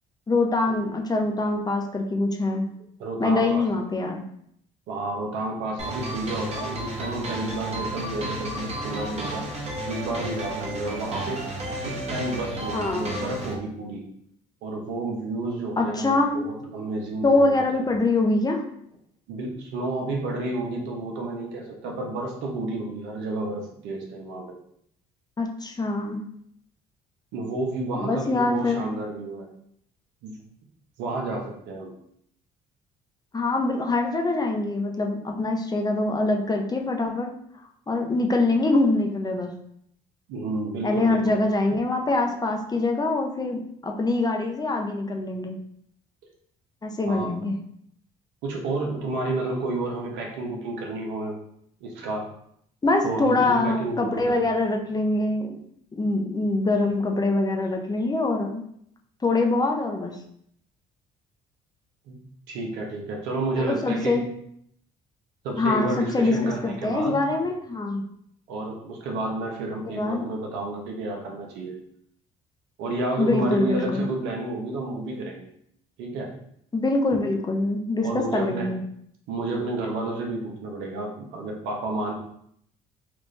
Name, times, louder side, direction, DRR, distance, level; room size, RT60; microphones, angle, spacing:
voice 1, 0.3-2.7 3.2-4.2 12.7-13.3 15.8-16.7 17.2-18.6 25.4-26.2 27.9-28.8 33.3-37.3 37.9-39.6 40.8-45.6 46.8-47.6 52.8-55.6 55.9-58.6 59.2-60.2 63.6-64.2 65.6-68.0 69.8-70.3 73.2-74.0 76.7-78.8, left 2 dB, 20° left, 2 dB, 0.7 m, -24 dB
voice 2, 3.0-3.6 4.9-9.5 9.9-11.4 11.8-14.0 14.6-17.8 19.3-24.6 27.3-29.5 30.2-30.4 31.0-31.9 40.3-41.4 47.1-47.3 48.4-51.4 51.8-52.3 53.0-54.5 62.1-62.2 62.5-64.2 65.4-67.2 68.5-71.7 72.8-75.5 76.0-76.3 78.0-78.7 79.3-82.1, right 2 dB, 80° right, 0 dB, 0.9 m, -31 dB
sound 1, 5.8-13.5, right 1 dB, 35° right, 1.1 m, -32 dB
3.4 x 2.5 x 3.3 m, 0.69 s
supercardioid pair, 70°, 18 cm